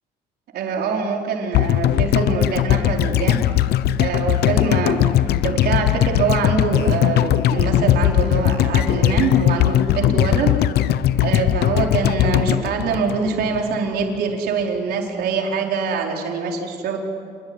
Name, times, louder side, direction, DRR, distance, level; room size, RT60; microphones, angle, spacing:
voice 1, 0.5-3.7 4.0-10.5 11.2-17.0, right 5 dB, 70° right, 1 dB, 4.6 m, -24 dB
sound 1, 1.5-13.7 14.0-14.1, left 12 dB, 75° left, 0.9 m, -19 dB
28.5 x 21.5 x 9.8 m, 2.2 s
cardioid pair, 110°, 17 cm